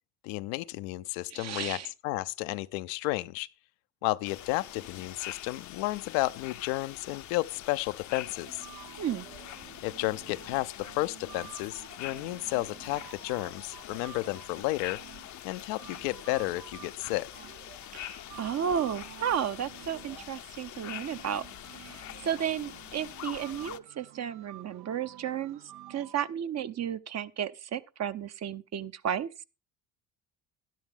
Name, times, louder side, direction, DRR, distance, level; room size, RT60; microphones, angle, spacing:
voice 1, 0.2-3.5 4.0-8.6 9.8-15.0 15.4-17.3, left 19 dB, 75° left, 0.6 m, -32 dB
voice 2, 1.3-1.9 9.0-9.3 17.9-21.4 21.8-25.6 25.9-29.3, right 9 dB, 40° right, 0.8 m, -33 dB
sound 1, 4.2-23.8, left 13 dB, 45° left, 0.6 m, -45 dB
sound 2, 8.4-26.2, right 12 dB, 80° right, 1.1 m, -51 dB
12.0 x 10.5 x 3.6 m
supercardioid pair, 75°, 42 cm